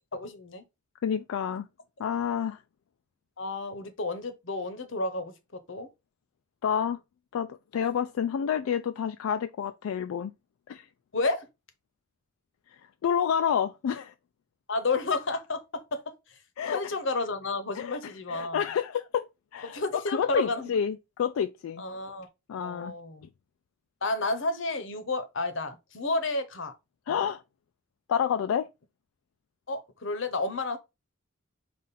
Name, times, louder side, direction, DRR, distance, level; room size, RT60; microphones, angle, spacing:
voice 1, 0.1-0.6 3.4-5.9 11.1-11.5 14.7-16.4 16.7-18.6 19.6-20.7 21.8-22.3 22.6-23.3 24.0-26.7 29.7-30.8, left 2 dB, 65° left, 0.8 m, -31 dB
voice 2, 1.0-1.7 2.0-2.6 6.6-7.0 7.3-10.3 10.7-10.9 12.7-14.1 16.6-16.8 17.8-21.8 22.5-22.9 27.1-27.4 28.1-28.7, left 8 dB, 85° left, 0.3 m, -29 dB
5.3 x 2.5 x 4.1 m
head